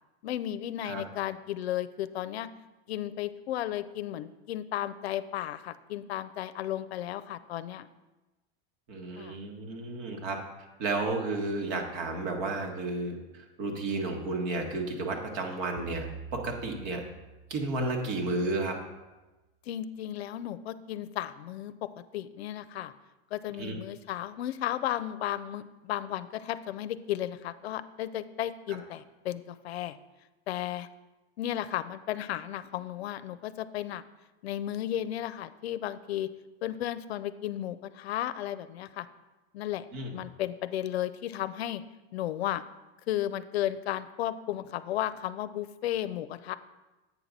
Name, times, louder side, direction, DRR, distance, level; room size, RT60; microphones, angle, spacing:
voice 1, 0.2-2.5 2.9-7.9 9.2-9.4 19.7-21.7 22.1-22.9 23.3-30.0 30.5-30.9 31.4-34.0 34.4-36.3 36.6-39.1 39.5-39.9 40.1-41.8 42.1-42.6 43.1-46.5, left 12 dB, 85° left, 13 dB, 0.5 m, -34 dB
voice 2, 8.9-10.4 10.8-16.0 16.3-17.0 17.5-18.8 23.6-23.8 39.9-40.2, right 2 dB, 60° right, 2 dB, 1.7 m, -32 dB
sound 1, 15.8-18.5, right 5 dB, 5° right, 0.6 m, -46 dB
8.2 x 5.9 x 4.1 m, 1.1 s
hypercardioid pair, 105°, 31 cm